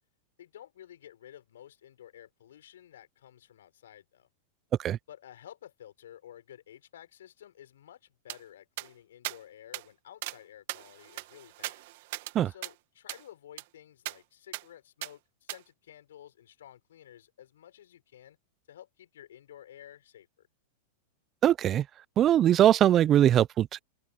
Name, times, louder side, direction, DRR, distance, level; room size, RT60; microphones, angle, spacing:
voice 1, 0.4-4.3 5.1-11.8 12.4-18.4 18.7-20.5, left 11 dB, 75° left, 6.7 m, -52 dB
sound 1, 8.3-8.4 8.8-8.9 9.2-9.4 9.7-9.8 10.2-10.4 10.7-12.3 12.6-12.7 13.1-13.2 13.6-13.7 14.1-14.2 14.5-14.6 15.0-15.1 15.5-15.6, right 20 dB, 60° right, 2.2 m, -38 dB
voice 2, 21.4-21.8 22.2-23.8, right 11 dB, 35° right, 0.7 m, -21 dB
hypercardioid pair, 100°, 0 cm